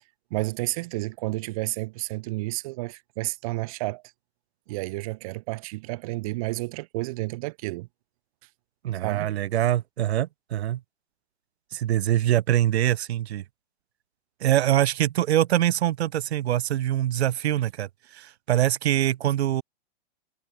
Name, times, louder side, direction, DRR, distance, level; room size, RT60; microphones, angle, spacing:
voice 1, 0.3-4.0 4.7-7.9 9.0-9.3, right 21 dB, 35° right, 1.4 m, -31 dB
voice 2, 8.8-10.8 11.7-13.4 14.4-19.6, right 12 dB, 75° right, 0.8 m, -24 dB
hypercardioid pair, 170°, 33 cm